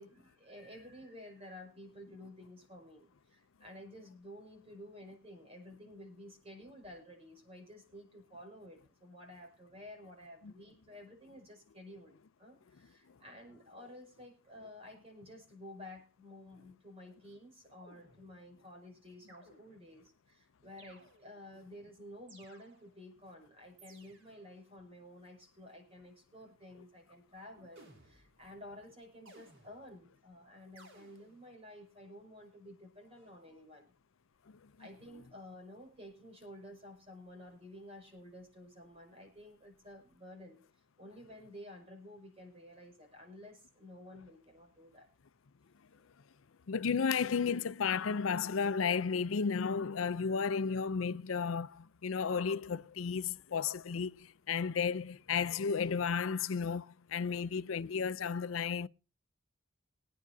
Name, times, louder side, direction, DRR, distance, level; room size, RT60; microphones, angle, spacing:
voice 1, 0.0-33.9 34.8-40.6 41.0-45.1, left 1 dB, 30° right, 6.0 m, -52 dB
sound 1, 17.8-18.6 19.3-20.0 20.8-21.5 22.3-23.1 23.8-24.5 27.7-28.5 29.2-30.0 30.7-31.5, right 2 dB, 70° right, 3.7 m, -60 dB
voice 2, 46.7-58.9, left 6 dB, 90° left, 0.6 m, -33 dB
24.5 x 9.6 x 2.7 m
head